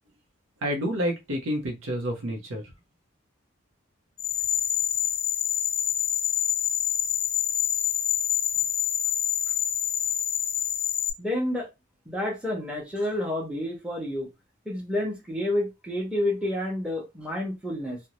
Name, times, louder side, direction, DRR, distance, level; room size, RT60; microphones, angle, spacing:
voice 1, 0.6-2.6, equal, 85° right, 0.7 m, -29 dB
sound 1, 4.2-11.1, left 10 dB, 30° left, 0.3 m, -26 dB
voice 2, 11.2-11.7 12.1-14.3 14.7-18.0, left 1 dB, 5° right, 0.7 m, -29 dB
2.5 x 2.1 x 2.9 m
head